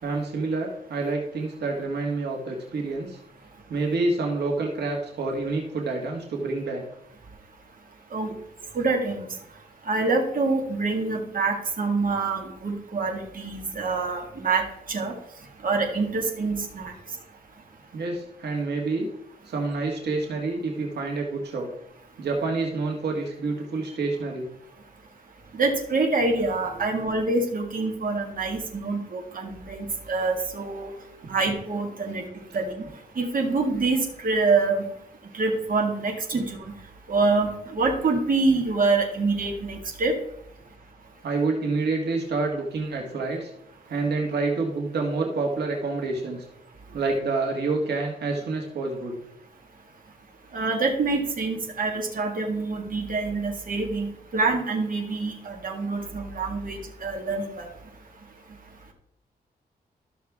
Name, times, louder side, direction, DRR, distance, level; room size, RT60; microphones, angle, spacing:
voice 1, 0.0-3.2 3.7-6.8 17.9-19.1 19.4-21.7 22.2-24.5 31.2-31.3 41.2-43.5 43.9-46.4 46.9-49.2, right 3 dB, 90° right, 1 dB, 1.7 m, -28 dB
voice 2, 8.7-9.3 9.9-15.1 15.6-16.9 25.5-30.9 31.3-32.2 32.5-32.7 33.1-34.8 35.3-36.7 37.1-40.1 50.5-57.7, right 3 dB, 55° right, 2 dB, 1.8 m, -26 dB
13.0 x 6.3 x 3.5 m, 0.76 s
wide cardioid pair, 105°, 17 cm